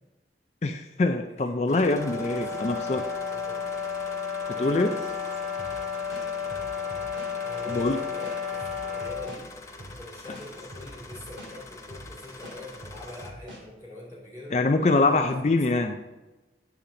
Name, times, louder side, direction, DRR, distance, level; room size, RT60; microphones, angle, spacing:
voice 1, 0.6-3.0 4.6-4.9 7.7-8.0 14.5-16.0, left 2 dB, 40° left, 6 dB, 0.4 m, -24 dB
voice 2, 1.3-2.6 3.3-3.7 4.5-4.9 7.4-8.6 8.9-9.5 9.8-14.6 14.9-15.3, left 1 dB, 15° right, -4 dB, 2.9 m, -43 dB
sound 1, 1.7-13.3, left 2 dB, 15° left, 0.8 m, -46 dB
sound 2, 1.8-9.3, left 6 dB, ahead, 1.1 m, -32 dB
sound 3, 5.6-5.8 6.1-7.3 7.7-7.9 8.2-9.4 9.8-10.0 10.3-11.5 11.9-12.1 12.4-13.6, equal, 80° right, 2.5 m, -44 dB
8.8 x 7.1 x 3.8 m, 1.1 s
head